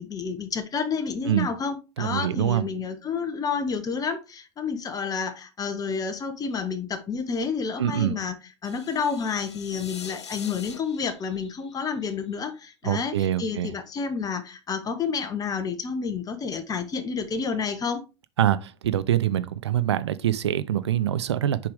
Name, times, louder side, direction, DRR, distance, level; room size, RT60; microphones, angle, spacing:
voice 1, 0.0-8.4 8.6-18.0, left 5 dB, 25° left, 1.1 m, -30 dB
voice 2, 2.0-2.6 7.8-8.1 12.8-13.7 18.4-21.6, right 11 dB, 70° right, 0.5 m, -24 dB
sound 1, 8.6-12.7, left 7 dB, 80° left, 0.7 m, -44 dB
7.1 x 4.7 x 3.5 m
figure-of-eight pair, 80°, 14 cm